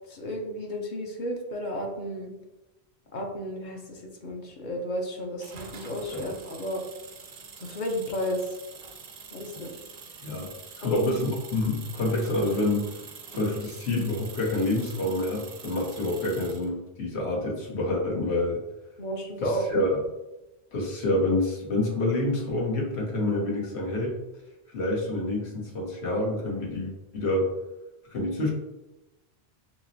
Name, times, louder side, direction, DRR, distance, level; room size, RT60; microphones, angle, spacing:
voice 1, 0.1-2.3 3.1-6.8 7.6-8.6 9.3-9.8 10.8-11.1 19.0-19.6, equal, 55° left, 1 dB, 0.7 m, -33 dB
sound 1, 5.4-16.7, right 5 dB, 55° right, 0.5 m, -45 dB
voice 2, 10.8-12.9 13.3-18.6 19.4-20.0 20.7-24.2 24.7-27.5 28.1-28.5, left 1 dB, 85° left, -2 dB, 1.2 m, -27 dB
5.8 x 2.0 x 2.6 m, 0.98 s
omnidirectional pair, 1.1 m